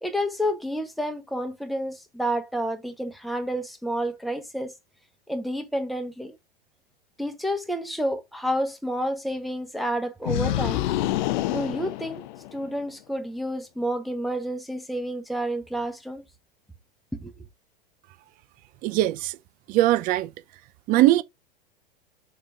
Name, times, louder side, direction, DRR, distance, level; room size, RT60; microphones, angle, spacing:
voice 1, 0.0-4.7 5.3-6.4 7.2-10.9 11.5-12.2 12.5-16.2 17.2-17.3, equal, ahead, 1.3 m, -29 dB
sound 1, 10.2-12.7, left 14 dB, 50° left, 0.7 m, -27 dB
voice 2, 18.8-19.3 19.7-20.3 20.9-21.2, right 15 dB, 30° right, 0.6 m, -20 dB
6.8 x 4.3 x 3.6 m
figure-of-eight pair, 95°, 29 cm